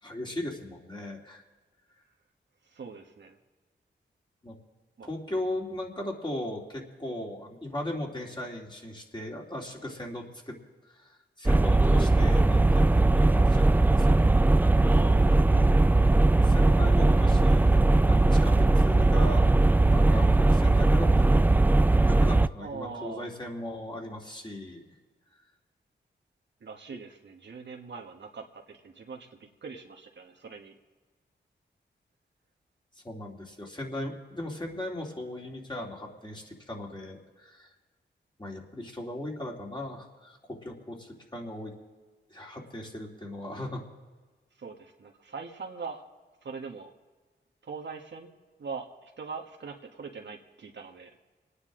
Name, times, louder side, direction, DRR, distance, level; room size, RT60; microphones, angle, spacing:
voice 1, 0.0-1.4 4.4-4.6 5.0-10.6 10.9-14.2 16.4-19.5 19.8-21.7 22.1-24.8 33.0-37.7 38.4-41.7 42.3-43.8, left 1 dB, 25° left, -1 dB, 2.8 m, -38 dB
voice 2, 2.6-3.4 5.0-5.1 14.9-15.7 22.6-23.3 26.6-30.7 44.6-46.0 46.4-46.9 47.6-48.3 48.6-51.2, right 5 dB, 65° right, 2 dB, 1.4 m, -42 dB
sound 1, 11.5-22.5, right 2 dB, 10° right, 0.3 m, -20 dB
26.5 x 9.7 x 3.8 m, 1.4 s
cardioid pair, 55°, 19 cm